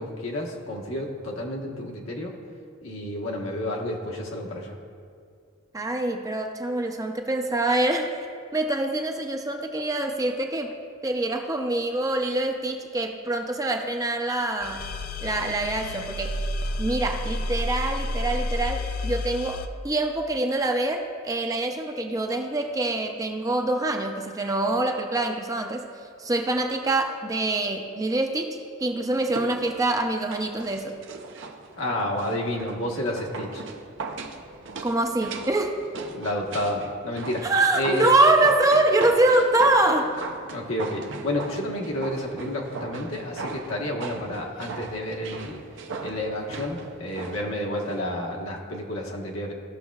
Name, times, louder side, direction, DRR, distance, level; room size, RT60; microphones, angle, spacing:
voice 1, 0.0-2.3 2.8-4.8 31.8-33.6 36.1-37.5 37.7-38.1 40.5-45.6 46.0-49.5, left 1 dB, 75° left, -1 dB, 1.3 m, -30 dB
voice 2, 5.7-8.1 8.5-10.7 11.0-14.8 15.2-16.5 16.8-25.9 26.2-28.5 28.8-31.0 34.8-35.8 37.4-40.1, right 2 dB, 15° right, 3 dB, 0.5 m, -25 dB
sound 1, 14.6-19.7, left 1 dB, 45° left, 0.4 m, -30 dB
sound 2, 29.2-48.0 48.3-48.4, right 3 dB, 60° right, 0.6 m, -39 dB
15.0 x 6.2 x 2.4 m, 2.2 s
head